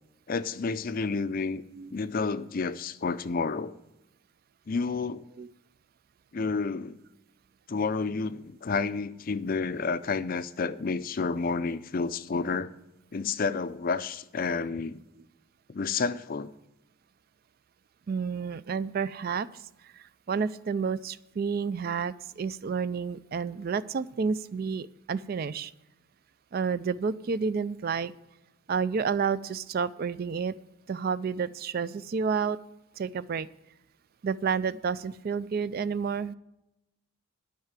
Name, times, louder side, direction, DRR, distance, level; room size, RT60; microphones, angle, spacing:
voice 1, 0.3-1.6 1.9-3.8 4.7-5.3 6.3-7.0 7.7-12.7 13.1-15.0 15.7-16.5, left 4 dB, 40° left, 0.4 m, -30 dB
voice 2, 18.1-19.5 19.9-25.7 26.5-28.1 28.7-30.5 30.9-32.6 33.0-33.5 34.2-36.3, right 5 dB, 45° right, 0.3 m, -30 dB
11.5 x 5.7 x 8.8 m
head